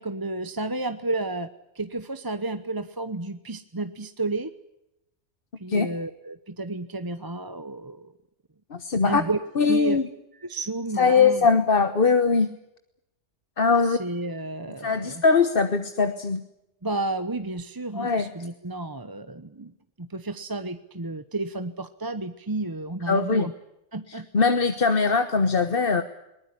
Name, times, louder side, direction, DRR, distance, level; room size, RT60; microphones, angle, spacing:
voice 1, 0.0-1.5 1.7-4.5 5.6-8.1 9.0-9.4 9.7-10.0 10.4-11.5 13.8-15.2 16.8-19.7 20.0-23.5 23.9-24.5, right 2 dB, 20° right, 11 dB, 0.9 m, -31 dB
voice 2, 8.7-9.2 9.6-10.1 11.0-12.5 13.6-14.0 14.8-16.4 17.9-18.3 23.1-23.5 24.1-26.0, left 5 dB, 50° left, 9 dB, 1.4 m, -21 dB
22.5 x 20.0 x 9.8 m, 0.86 s
omnidirectional pair, 1.2 m